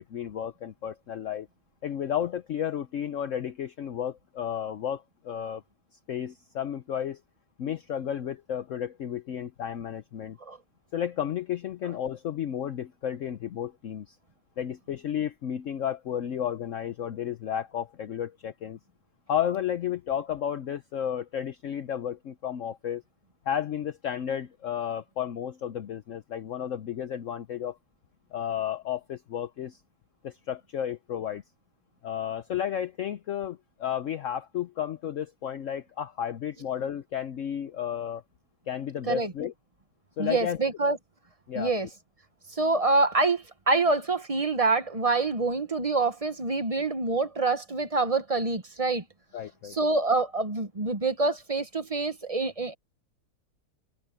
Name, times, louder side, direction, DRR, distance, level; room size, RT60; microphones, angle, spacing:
voice 1, 0.0-1.5 1.8-5.6 6.1-7.2 7.6-10.4 10.9-14.2 14.6-18.8 19.3-23.0 23.5-27.8 28.3-29.8 30.2-31.4 32.0-38.2 38.7-39.5 40.2-40.6 41.5-41.7 49.3-49.8, left 9 dB, 60° left, 1.0 m, -32 dB
voice 2, 40.2-41.0 41.5-41.9 42.5-49.0 49.7-52.7, right 3 dB, 25° right, 0.9 m, -26 dB
omnidirectional pair, 1.7 m